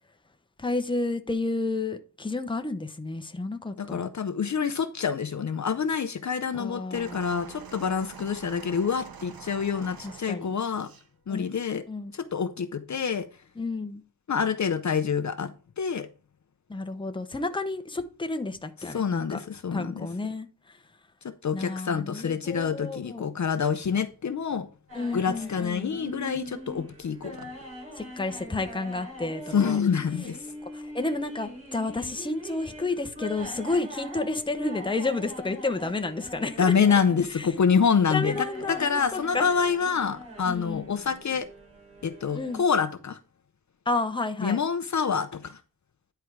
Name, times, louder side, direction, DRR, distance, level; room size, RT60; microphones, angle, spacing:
voice 1, 0.6-4.0 6.5-7.5 10.0-10.5 11.3-11.4 11.9-12.1 13.6-14.0 16.7-19.4 19.7-20.8 21.5-23.3 24.9-26.0 28.0-29.8 30.7-36.7 37.4-37.5 38.1-39.5 40.4-40.9 42.3-42.6 43.9-44.6, left 3 dB, 15° left, 0.8 m, -31 dB
voice 2, 3.8-10.9 11.3-11.8 12.1-13.3 14.3-15.5 15.8-16.1 18.9-20.1 21.2-24.7 25.1-27.5 29.5-30.4 36.6-41.5 42.0-43.2 44.4-45.6, left 6 dB, 50° left, 0.7 m, -27 dB
sound 1, 6.9-11.1 12.0-12.1, right 6 dB, 80° right, 1.1 m, -46 dB
sound 2, 24.9-42.6, equal, 40° right, 5.0 m, -43 dB
10.5 x 4.6 x 4.7 m
wide cardioid pair, 150°, 35 cm